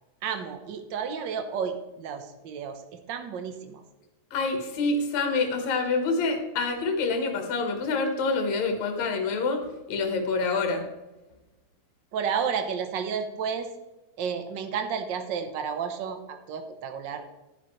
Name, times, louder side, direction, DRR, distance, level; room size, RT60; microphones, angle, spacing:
voice 1, 0.2-2.8 3.1-3.8 12.1-13.7 14.2-17.3, right 6 dB, 70° right, 7 dB, 1.1 m, -31 dB
voice 2, 4.3-10.8, left 3 dB, 70° left, 4 dB, 2.8 m, -27 dB
12.0 x 10.0 x 3.2 m, 1.1 s
omnidirectional pair, 3.4 m